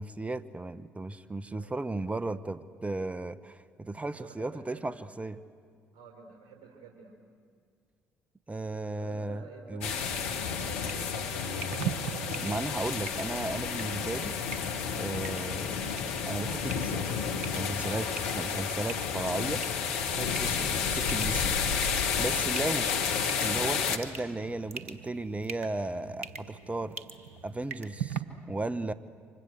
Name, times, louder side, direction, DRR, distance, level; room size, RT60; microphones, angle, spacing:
voice 1, 0.0-5.4 8.5-9.4 9.7-9.9 12.4-14.4 14.9-15.8 16.3-17.0 17.4-18.1 18.3-19.6 20.0-21.6 21.9-22.9 23.4-27.0 27.4-28.2 28.5-28.9, right 2 dB, 20° right, 12 dB, 1.2 m, -35 dB
voice 2, 4.1-5.1 5.9-7.2 9.0-12.5, right 5 dB, 60° right, 2 dB, 4.2 m, -49 dB
sound 1, 9.8-24.0, left 6 dB, 80° left, 1.3 m, -31 dB
sound 2, 10.0-28.2, right 7 dB, 90° right, 1.0 m, -43 dB
29.0 x 25.5 x 8.0 m, 2.1 s
hypercardioid pair, 45°, 7 cm